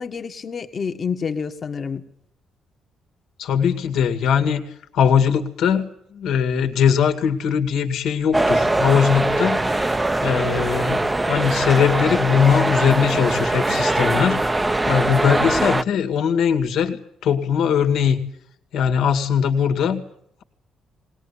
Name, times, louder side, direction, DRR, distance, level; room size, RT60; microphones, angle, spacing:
voice 1, 0.0-2.1, left 6 dB, 45° left, 7 dB, 1.7 m, -28 dB
voice 2, 3.4-4.6 4.9-14.4 14.9-18.2 18.7-20.0, left 7 dB, 80° left, 6 dB, 2.2 m, -20 dB
sound 1, 8.3-15.8, right 2 dB, 15° right, 0.8 m, -21 dB
20.0 x 19.5 x 8.5 m, 0.70 s
cardioid pair, 85°, 0 cm